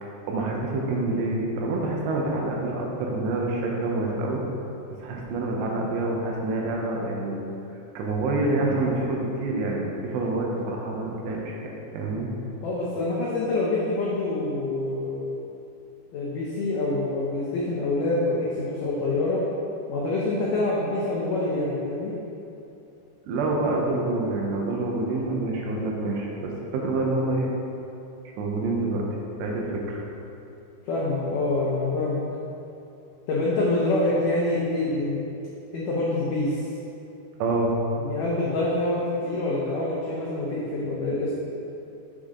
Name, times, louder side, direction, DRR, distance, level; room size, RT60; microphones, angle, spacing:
voice 1, 0.0-4.4 4.9-7.4 7.9-12.3 23.3-27.5 28.4-29.0 29.4-30.0 37.4-37.8, right 2 dB, 80° right, -1 dB, 3.1 m, -27 dB
voice 2, 12.6-15.3 16.1-19.4 19.9-22.1 30.8-32.2 33.3-35.2 35.7-36.7 38.0-41.3, left 2 dB, 80° left, -6 dB, 1.9 m, -26 dB
7.3 x 6.8 x 3.8 m, 2.8 s
omnidirectional pair, 5.0 m